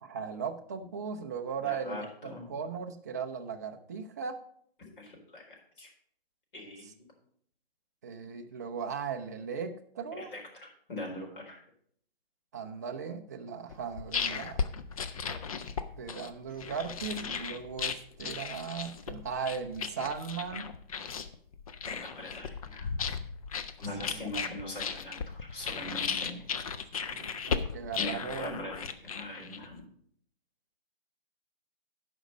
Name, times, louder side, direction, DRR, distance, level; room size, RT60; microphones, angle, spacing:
voice 1, 0.0-4.4 8.0-10.3 12.5-14.6 15.9-20.7 24.0-24.1 27.1-28.6, right 6 dB, 20° right, 5 dB, 0.4 m, -37 dB
voice 2, 1.6-2.5 5.0-5.9 6.5-7.1 10.2-11.6 22.0-22.9 23.8-26.5 28.0-29.9, left 1 dB, 60° left, 0 dB, 4.0 m, -42 dB
sound 1, 13.7-29.8, left 6 dB, 35° left, 0.6 m, -36 dB
12.0 x 5.2 x 5.1 m, 0.63 s
figure-of-eight pair, 145°, 30 cm